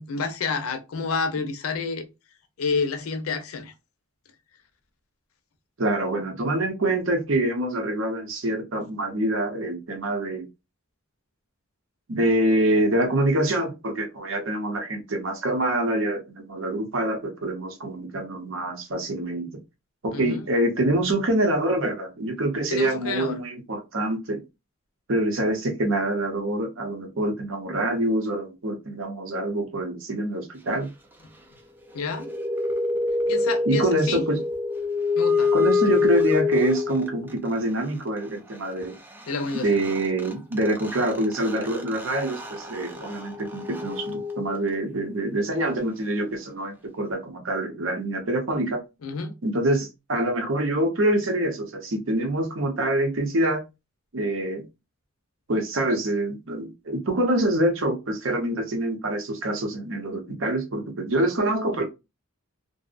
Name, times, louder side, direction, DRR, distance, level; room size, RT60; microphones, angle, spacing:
voice 1, 0.0-2.1 2.6-3.7 20.1-20.5 22.7-23.4 31.9-32.3 33.3-34.2 35.2-35.5 39.3-39.8 49.0-49.3, left 4 dB, 90° left, 0.5 m, -29 dB
voice 2, 5.8-10.4 12.1-19.5 20.0-24.4 25.1-30.9 33.7-34.4 35.5-38.9 39.5-48.8 49.4-53.6 54.1-54.6 55.5-61.8, right 1 dB, 65° right, 0.7 m, -25 dB
sound 1, 31.9-37.3 39.2-39.3 39.5-45.0, left 4 dB, 10° right, 0.3 m, -26 dB
2.6 x 2.0 x 2.4 m
head